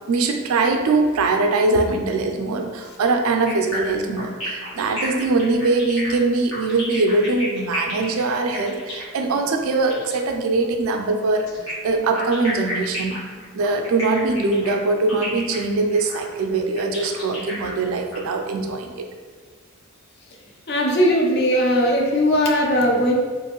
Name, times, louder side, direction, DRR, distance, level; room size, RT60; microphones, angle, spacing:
voice 1, 0.1-13.3 13.5-19.1, right 3 dB, 70° right, 4 dB, 0.3 m, -22 dB
sound 1, 3.5-10.2 11.5-18.2, left 1 dB, 75° left, 1.2 m, -33 dB
voice 2, 20.7-23.2, equal, 50° left, 0 dB, 0.5 m, -19 dB
2.9 x 2.5 x 2.9 m, 1.5 s
head